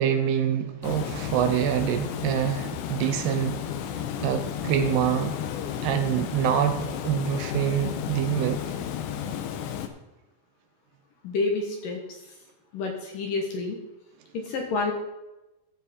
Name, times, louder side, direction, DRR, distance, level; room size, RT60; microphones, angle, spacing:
voice 1, 0.0-3.6 4.2-5.4 5.8-8.6, right 9 dB, 80° right, 7 dB, 2.6 m, -25 dB
Water, 0.8-9.9, left 9 dB, 85° left, 3.0 m, -33 dB
voice 2, 11.2-12.0 12.7-13.8 14.3-14.9, left 3 dB, 65° left, 2 dB, 2.3 m, -28 dB
15.0 x 7.3 x 4.2 m, 0.99 s
omnidirectional pair, 5.1 m